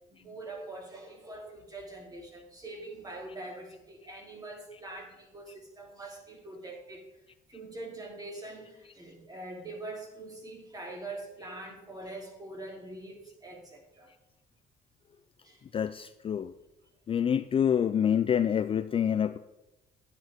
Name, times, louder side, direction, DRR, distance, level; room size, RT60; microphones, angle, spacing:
voice 1, 0.1-7.1 7.5-14.1 15.4-15.6, right 2 dB, 20° right, 1 dB, 2.8 m, -44 dB
voice 2, 15.7-16.5 17.1-19.4, left 8 dB, 35° left, 11 dB, 0.4 m, -27 dB
10.5 x 9.4 x 3.6 m, 0.98 s
cardioid pair, 110°, 17 cm